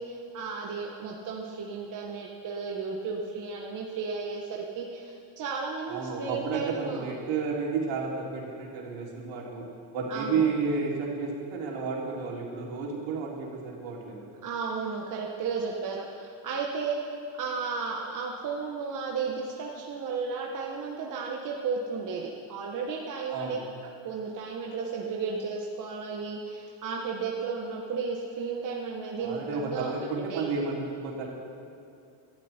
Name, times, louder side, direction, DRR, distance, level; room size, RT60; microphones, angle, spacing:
voice 1, 0.0-7.1 10.1-10.5 14.4-17.0 17.4-23.6 24.0-30.4, right 5 dB, 40° right, -1 dB, 1.4 m, -34 dB
voice 2, 5.9-9.7 9.9-14.3 23.3-23.6 29.2-31.3, right 4 dB, 70° right, -3 dB, 3.6 m, -31 dB
17.5 x 12.5 x 4.4 m, 2.5 s
cardioid pair, 135°, 48 cm